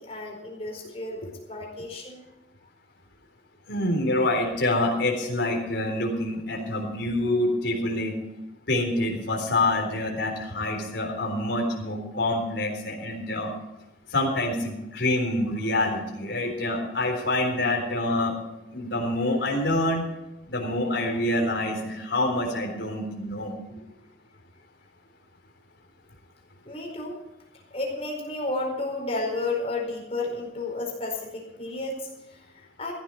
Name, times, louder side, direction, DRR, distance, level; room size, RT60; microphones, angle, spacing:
voice 1, 0.0-2.3 26.6-27.2 27.7-32.9, left 2 dB, 35° left, 0 dB, 4.6 m, -32 dB
voice 2, 3.7-8.1 8.7-13.5 14.1-18.3 18.7-20.0 20.5-23.5, left 1 dB, 70° left, 0 dB, 3.8 m, -26 dB
15.5 x 12.0 x 4.8 m, 0.93 s
head